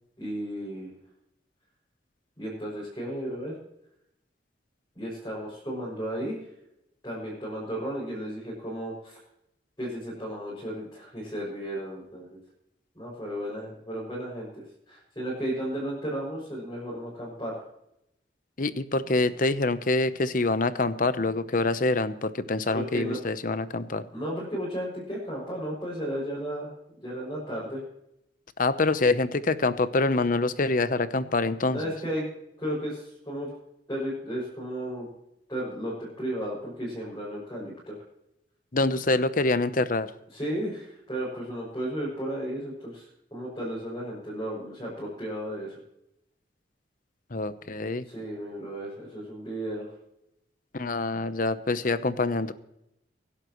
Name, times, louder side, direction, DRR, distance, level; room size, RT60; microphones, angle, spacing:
voice 1, 0.2-0.9 2.4-3.5 4.9-6.4 7.0-9.2 9.8-12.4 12.9-14.5 14.9-17.6 22.7-23.2 24.1-26.7 27.0-27.8 31.7-32.2 32.6-33.5 33.9-35.1 35.5-37.9 40.3-43.0 43.3-45.8 48.0-49.9, equal, 20° left, -7 dB, 6.3 m, -34 dB
voice 2, 18.6-24.0 28.6-31.8 38.7-40.1 47.3-48.0 50.7-52.5, left 2 dB, 50° left, 13 dB, 0.8 m, -25 dB
24.5 x 11.5 x 3.1 m, 0.83 s
head